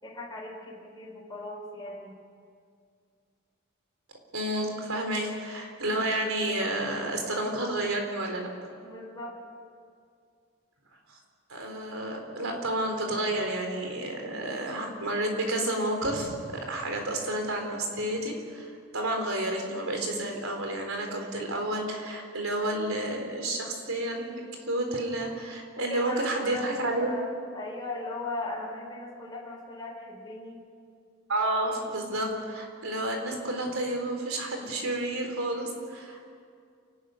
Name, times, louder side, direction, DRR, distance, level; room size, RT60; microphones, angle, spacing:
voice 1, 0.0-2.2 8.8-9.4 25.8-27.3 27.5-30.6, left 2 dB, 20° left, -5 dB, 4.1 m, -38 dB
voice 2, 4.3-8.5 11.1-11.2 11.5-27.1 31.3-36.3, right 1 dB, 85° right, 3 dB, 4.1 m, -30 dB
sound 1, 16.0-18.5, equal, 10° right, 3.0 m, -46 dB
28.5 x 12.5 x 9.4 m, 2.2 s
head